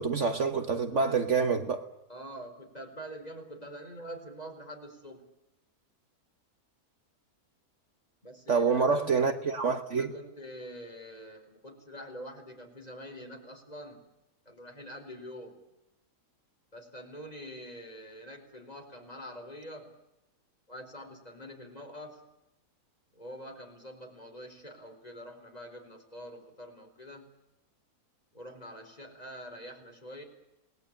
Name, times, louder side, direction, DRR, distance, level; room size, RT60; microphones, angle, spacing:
voice 1, 0.0-1.9 8.5-10.1, right 5 dB, 55° right, 7 dB, 1.5 m, -27 dB
voice 2, 2.1-5.2 8.2-9.1 10.0-14.0 14.5-15.6 16.7-19.9 20.7-22.2 23.1-27.3 28.3-30.2, equal, 25° left, 4 dB, 4.6 m, -45 dB
28.0 x 19.5 x 8.9 m, 0.93 s
omnidirectional pair, 1.6 m